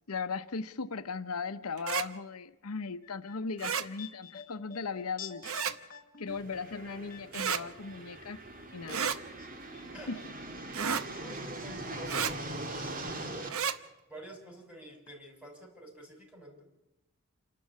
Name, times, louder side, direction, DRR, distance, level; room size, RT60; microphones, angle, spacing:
voice 1, 0.1-5.4 6.2-8.4 8.7-9.1 10.1-10.2, left 4 dB, 85° left, 11 dB, 0.8 m, -37 dB
sound 1, 1.8-2.1 3.6-3.9 5.4-5.8 7.3-7.6 8.9-9.2 10.7-11.1 12.1-12.3 13.5-13.8, right 7 dB, 70° right, 1.0 m, -31 dB
sound 2, 3.0-8.3 8.5-9.5 9.7-9.8, left 8 dB, 40° left, 1.6 m, -49 dB
sound 3, 6.3-13.5, right 2 dB, 40° right, 2.2 m, -42 dB
voice 2, 10.8-13.5 14.1-16.6, equal, 5° right, 0 dB, 6.4 m, -48 dB
28.5 x 12.0 x 8.4 m, 0.98 s
head